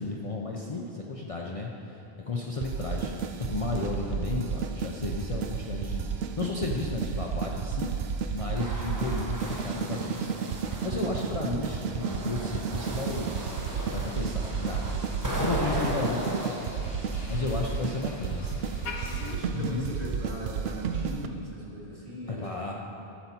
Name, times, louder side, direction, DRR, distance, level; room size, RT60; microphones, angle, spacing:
voice 1, 0.0-10.3 10.6-13.5 13.9-14.9 15.4-16.6 17.3-18.7 19.5-19.9 22.3-22.7, left 3 dB, 40° left, -2 dB, 0.6 m, -33 dB
sound 1, 2.6-21.3, right 6 dB, 80° right, 0.8 m, -32 dB
sound 2, 8.4-11.0 11.6-16.5, equal, 20° right, 1.0 m, -36 dB
voice 2, 10.6-11.5 18.9-22.7, equal, 40° right, -6 dB, 2.1 m, -40 dB
Motor vehicle (road), 13.4-19.4, left 4 dB, 70° left, 1.1 m, -44 dB
12.0 x 6.9 x 4.3 m, 2.8 s
omnidirectional pair, 1.0 m